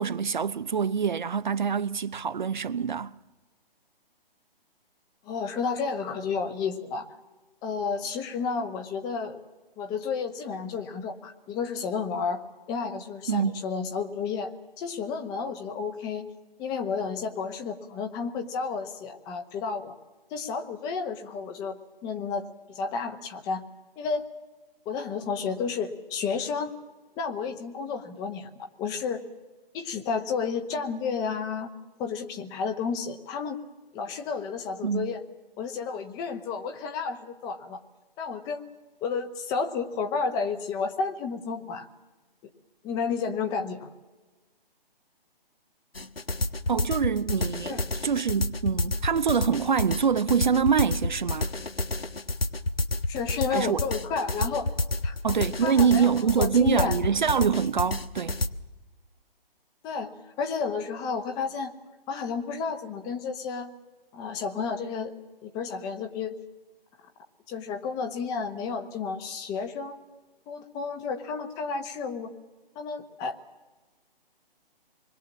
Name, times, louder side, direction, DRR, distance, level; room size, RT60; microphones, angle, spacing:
voice 1, 0.0-3.1 13.3-13.6 34.8-35.1 46.7-51.5 53.5-53.8 55.2-58.4, right 7 dB, 50° right, 0.7 m, -25 dB
voice 2, 5.2-7.1 7.6-9.4 9.8-12.4 12.7-16.3 16.6-19.9 20.3-22.5 22.7-23.6 24.0-24.2 24.8-26.7 27.2-29.2 29.7-31.7 32.0-33.6 33.9-35.2 35.6-37.8 38.2-38.7 39.0-41.9 42.8-43.9 47.6-47.8 53.1-54.7 55.0-55.1 55.6-57.0 59.8-61.7 62.1-63.7 64.1-65.1 65.4-66.4 67.5-70.0 70.5-72.3 72.7-73.4, left 5 dB, 10° left, 1.1 m, -31 dB
sound 1, 45.9-58.5, left 2 dB, 75° left, 1.4 m, -29 dB
26.5 x 21.5 x 7.4 m
figure-of-eight pair, 140°, 30 cm